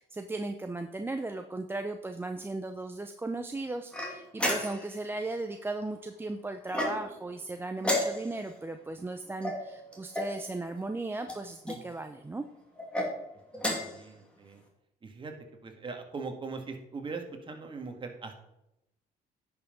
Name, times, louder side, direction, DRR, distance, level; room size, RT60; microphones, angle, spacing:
voice 1, 0.0-12.5, right 2 dB, 15° right, 6 dB, 0.6 m, -36 dB
sound 1, 3.9-5.0 6.7-7.3 7.8-8.5 9.4-10.4 11.2-11.8 12.8-13.1 13.5-14.0, left 1 dB, 5° left, 2.8 m, -32 dB
voice 2, 13.8-14.6 15.0-15.3 15.6-18.3, right 4 dB, 30° right, 4 dB, 1.9 m, -40 dB
10.0 x 5.8 x 5.2 m, 0.85 s
cardioid pair, 110°, 17 cm